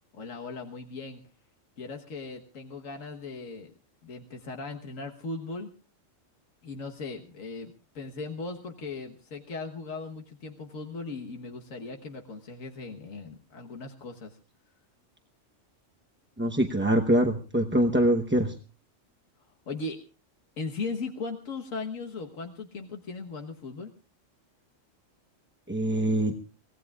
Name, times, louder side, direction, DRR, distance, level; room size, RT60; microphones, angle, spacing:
voice 1, 0.1-1.2 1.8-3.7 4.0-5.7 6.6-14.4 19.7-20.0 20.6-23.9, left 3 dB, 85° left, 3 dB, 1.7 m, -38 dB
voice 2, 16.4-18.5 25.7-26.3, right 1 dB, 10° right, 3 dB, 0.8 m, -24 dB
25.0 x 17.5 x 2.4 m, 0.36 s
omnidirectional pair, 1.3 m